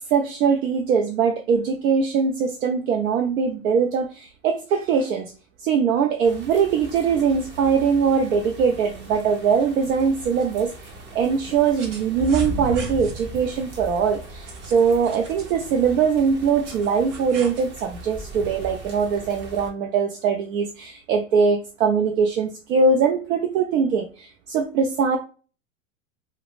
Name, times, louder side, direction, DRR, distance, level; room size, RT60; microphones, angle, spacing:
voice 1, 0.1-5.3 5.6-10.7 11.1-25.2, right 6 dB, 85° right, 4 dB, 0.6 m, -22 dB
sound 1, 6.2-19.7, right 1 dB, 30° right, 0.7 m, -38 dB
sound 2, 10.4-10.5 11.2-13.2 14.5-15.6 16.4-17.7, right 4 dB, 60° right, 1.0 m, -41 dB
4.1 x 2.1 x 2.4 m, 0.37 s
hypercardioid pair, 130°, 41 cm